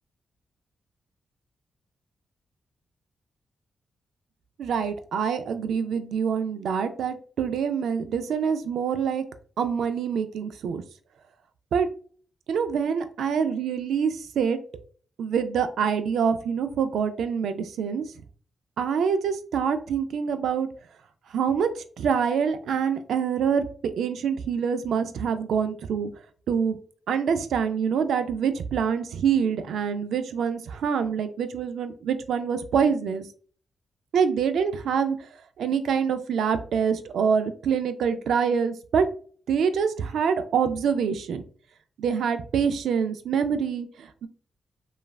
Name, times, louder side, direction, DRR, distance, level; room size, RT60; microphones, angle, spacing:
voice 1, 4.6-9.2 9.6-10.8 11.7-11.9 12.5-14.6 15.2-18.0 18.8-20.7 21.3-21.7 22.0-23.6 24.0-26.1 26.5-26.8 27.1-33.2 34.1-35.2 35.6-39.1 39.5-41.4 42.0-44.3, right 7 dB, 85° right, 9 dB, 0.3 m, -25 dB
3.1 x 2.4 x 2.2 m, 0.43 s
cardioid pair, 75°, 0 cm